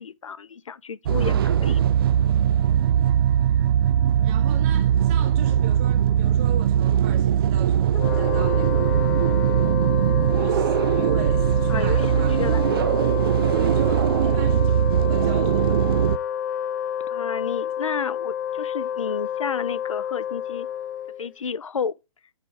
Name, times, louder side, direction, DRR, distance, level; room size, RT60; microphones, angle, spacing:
voice 1, 0.0-1.8 11.7-12.1 12.4-12.7 17.1-20.7 21.2-22.0, left 6 dB, 90° left, 0.6 m, -31 dB
sound 1, 1.1-16.2, right 10 dB, 50° right, 0.4 m, -20 dB
voice 2, 1.2-1.6 4.2-9.1 10.3-12.4 13.5-15.8, right 9 dB, 30° right, 1.4 m, -38 dB
Wind instrument woodwind instrument, 7.9-21.3, left 10 dB, 40° left, 0.5 m, -29 dB
9.1 x 3.6 x 3.4 m
hypercardioid pair, 145°, 16 cm